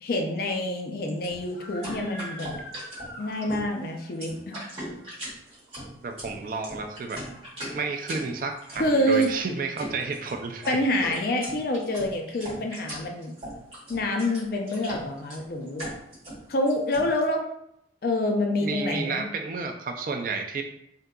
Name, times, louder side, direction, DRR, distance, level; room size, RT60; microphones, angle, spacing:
voice 1, 0.0-2.6 3.2-4.6 8.8-9.3 10.7-13.3 13.9-15.9 16.5-17.4 18.0-19.3, left 1 dB, 55° left, 2 dB, 0.4 m, -27 dB
sound 1, 1.1-17.1, right 1 dB, 30° right, 1.3 m, -39 dB
Screaming, 1.4-4.2, equal, 70° left, 0.8 m, -43 dB
voice 2, 6.0-7.2 7.7-10.8 18.6-20.6, right 4 dB, 50° right, 4 dB, 0.3 m, -31 dB
3.6 x 2.7 x 2.2 m, 0.77 s
head